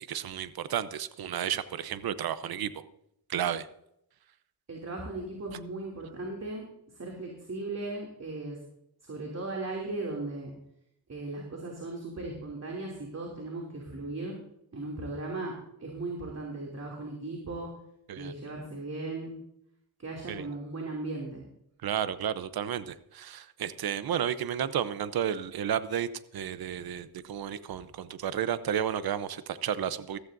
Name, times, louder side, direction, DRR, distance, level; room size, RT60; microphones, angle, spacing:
voice 1, 0.1-2.8 3.3-3.7 18.1-18.3 20.3-20.5 21.8-30.2, right 9 dB, 65° right, 14 dB, 0.8 m, -32 dB
voice 2, 4.7-6.7 6.9-8.6 9.0-10.5 11.1-14.3 14.7-15.5 15.8-17.7 18.2-19.4 20.0-21.4, right 2 dB, 40° right, -1 dB, 2.8 m, -37 dB
15.0 x 14.0 x 2.7 m, 0.78 s
cardioid pair, 85°, 40 cm